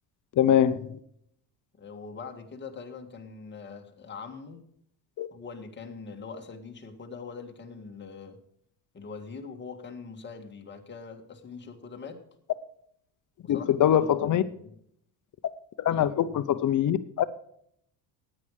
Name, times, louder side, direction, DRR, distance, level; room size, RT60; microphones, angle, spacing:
voice 1, 0.4-1.0 5.2-5.3 13.5-14.4 15.8-17.2, left 10 dB, 45° left, 0.8 m, -23 dB
voice 2, 1.7-4.6 5.3-8.4 8.9-12.2 13.4-14.7 15.9-16.1, left 5 dB, 25° left, 1.8 m, -43 dB
15.5 x 9.9 x 4.9 m
cardioid pair, 155°, 41 cm